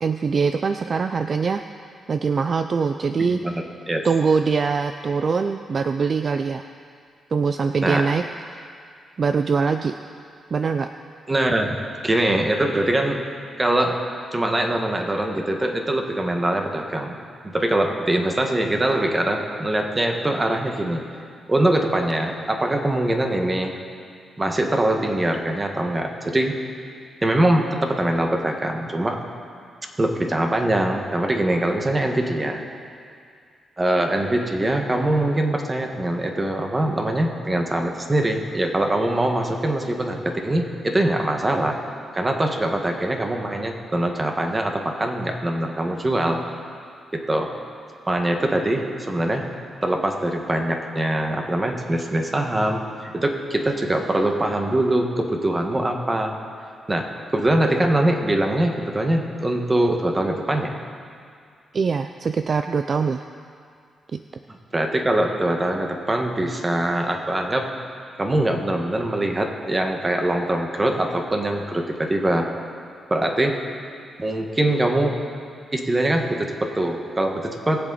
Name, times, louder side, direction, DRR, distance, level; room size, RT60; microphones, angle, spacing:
voice 1, 0.0-1.6 2.1-3.4 4.0-6.7 7.3-8.2 8.5-8.6 9.2-9.9 10.5-10.9 61.7-63.3 64.1-64.2, right 5 dB, 50° right, 9 dB, 0.4 m, -23 dB
voice 2, 11.3-11.8 12.0-13.2 13.6-14.0 14.3-17.2 17.4-21.0 21.5-23.7 24.4-26.5 27.2-29.2 30.0-32.6 33.8-41.8 42.1-46.4 47.1-47.5 48.1-49.4 49.8-56.4 56.9-60.8 64.5-67.7 68.2-72.5 73.1-73.6 74.2-75.2 75.7-77.8, right 1 dB, 25° right, 3 dB, 1.5 m, -23 dB
20.0 x 7.7 x 4.1 m, 2.3 s
cardioid pair, 75°, 0 cm